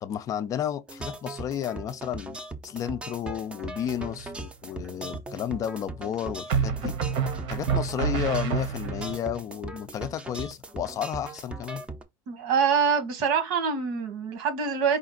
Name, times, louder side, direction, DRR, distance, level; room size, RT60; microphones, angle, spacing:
voice 1, 0.0-2.4 2.6-7.0 7.5-11.8, left 10 dB, 30° left, 0.4 m, -32 dB
sound 1, 0.9-12.0, right 2 dB, 10° right, 0.6 m, -39 dB
sound 2, 3.8-4.4 6.5-9.2, right 7 dB, 60° right, 1.0 m, -28 dB
voice 2, 12.3-15.0, right 6 dB, 80° right, 1.5 m, -25 dB
4.9 x 2.5 x 3.8 m
cardioid pair, 160°, 11 cm